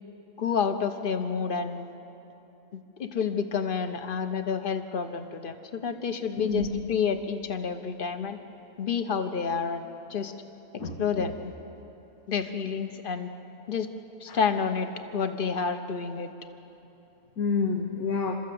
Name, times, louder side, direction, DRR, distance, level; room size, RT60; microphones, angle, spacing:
voice 1, 0.4-1.9 2.7-8.4 8.8-9.8 10.1-10.3 11.0-11.5 12.3-13.3 13.7-13.9 14.2-16.3, left 6 dB, 40° left, 8 dB, 1.2 m, -29 dB
voice 2, 6.4-6.7 10.8-11.3 14.3-14.4 17.4-18.4, left 4 dB, 85° left, 0 dB, 1.9 m, -29 dB
29.0 x 13.5 x 7.8 m, 2.9 s
omnidirectional pair, 1.5 m